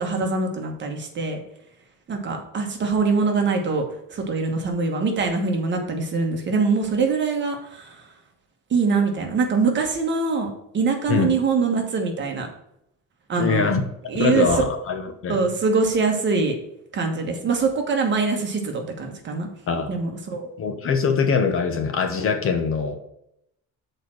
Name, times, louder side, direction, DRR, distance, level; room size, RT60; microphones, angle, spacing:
voice 1, 0.0-1.4 2.1-3.8 4.1-8.1 8.7-10.5 10.7-12.5 13.3-13.7 14.1-14.5 15.3-16.5 16.9-19.5 19.9-20.5, right 4 dB, 35° right, 3 dB, 1.3 m, -23 dB
voice 2, 13.4-13.8 14.1-15.5 19.7-20.0 20.6-23.0, left 5 dB, 40° left, 6 dB, 0.9 m, -23 dB
6.8 x 4.4 x 6.3 m, 0.77 s
cardioid pair, 170°, 34 cm